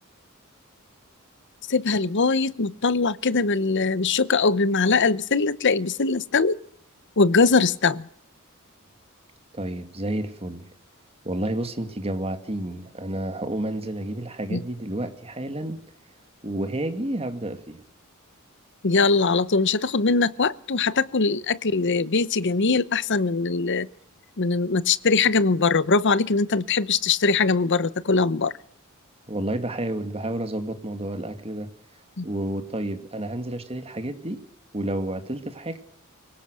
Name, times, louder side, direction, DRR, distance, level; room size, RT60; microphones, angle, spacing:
voice 1, 1.7-6.6 7.2-8.1 14.5-14.6 18.8-23.9 24.4-28.5 32.2-32.3, left 4 dB, 55° left, 18 dB, 0.9 m, -21 dB
voice 2, 9.5-10.7 11.2-15.8 16.4-17.8 29.3-31.7 32.2-34.4 34.7-35.8, right 1 dB, 30° right, 8 dB, 2.3 m, -30 dB
25.0 x 17.0 x 6.3 m, 0.63 s
head